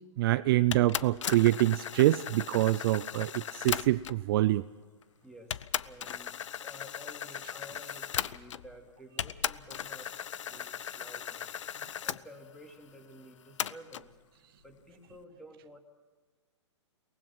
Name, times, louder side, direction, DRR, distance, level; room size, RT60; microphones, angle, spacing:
voice 1, 0.2-4.6, right 16 dB, 50° right, 14 dB, 0.5 m, -25 dB
sound 1, 0.7-4.3 5.0-5.1 5.5-8.8 9.2-12.2 13.6-14.1, left 9 dB, 80° left, 0.6 m, -37 dB
voice 2, 5.2-6.4 6.6-10.1 10.4-11.6 12.0-14.1 14.6-15.8, equal, 5° left, 3 dB, 2.8 m, -52 dB
23.0 x 19.0 x 6.1 m, 1.3 s
hypercardioid pair, 130°, 16 cm